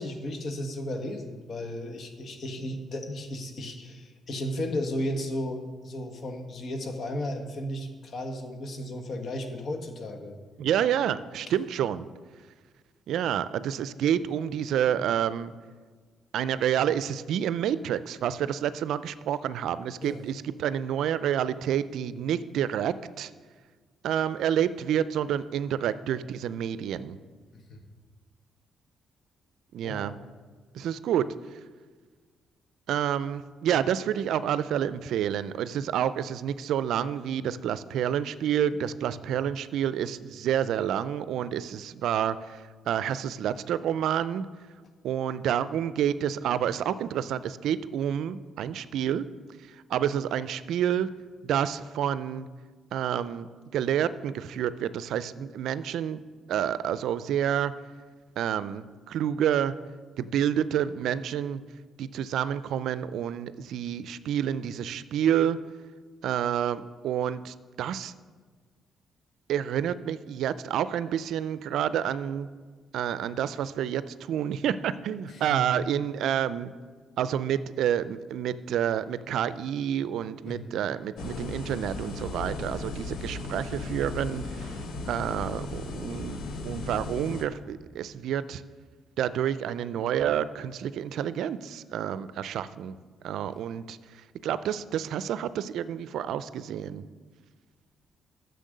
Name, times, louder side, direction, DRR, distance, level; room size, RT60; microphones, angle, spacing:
voice 1, 0.0-10.3 20.0-20.2 27.5-27.8 29.8-30.2 75.3-75.6 80.5-80.7, left 1 dB, 55° left, 5 dB, 1.5 m, -34 dB
voice 2, 10.6-12.1 13.1-15.5 16.3-23.3 24.0-27.2 29.7-30.1 30.7-31.3 32.9-44.5 45.0-49.2 49.9-51.1 51.4-52.5 52.9-53.5 53.7-56.2 56.5-57.7 58.4-59.7 60.2-61.6 62.0-65.6 66.2-68.1 69.5-72.5 72.9-76.7 77.2-84.8 85.1-88.6 89.2-92.9 93.2-94.0 94.4-97.0, right 9 dB, 75° right, 15 dB, 0.4 m, -29 dB
sound 1, 81.2-87.5, left 3 dB, 75° left, 1.0 m, -36 dB
10.0 x 6.8 x 6.6 m, 1.5 s
cardioid pair, 90°, 0 cm